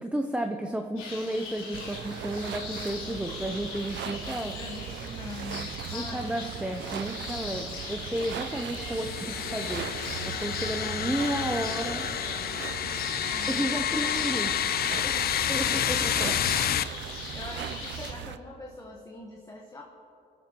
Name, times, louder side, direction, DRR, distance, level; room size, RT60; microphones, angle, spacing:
voice 1, 0.0-4.6 5.9-9.8 10.2-12.1 13.5-14.6 15.5-16.4, right 1 dB, 5° right, 4 dB, 0.6 m, -32 dB
sound 1, 1.0-18.1, left 4 dB, 85° left, 3.2 m, -40 dB
sound 2, 1.7-18.4, right 10 dB, 65° right, 0.5 m, -39 dB
voice 2, 4.5-7.6 10.8-11.0 13.3-13.5 15.0-15.8 17.0-19.8, left 2 dB, 15° left, 0 dB, 1.2 m, -44 dB
sound 3, 8.8-16.8, left 10 dB, 50° left, 0.4 m, -29 dB
25.5 x 9.9 x 3.0 m, 2.9 s
cardioid pair, 90°, 20 cm